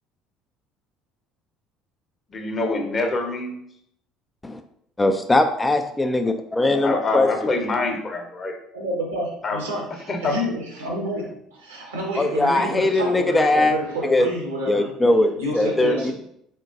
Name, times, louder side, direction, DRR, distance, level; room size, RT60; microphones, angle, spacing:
voice 1, 2.3-3.6 6.8-8.5 9.4-9.6 10.1-10.4, left 2 dB, 30° left, 4 dB, 0.8 m, -25 dB
voice 2, 5.0-7.5 12.2-13.8 14.0-14.3 14.7-16.1, left 2 dB, 15° left, 6 dB, 0.3 m, -20 dB
voice 3, 8.7-14.9 15.4-16.1, right 1 dB, 75° right, -1 dB, 1.2 m, -29 dB
4.4 x 3.6 x 2.5 m, 0.72 s
figure-of-eight pair, 60°, 0 cm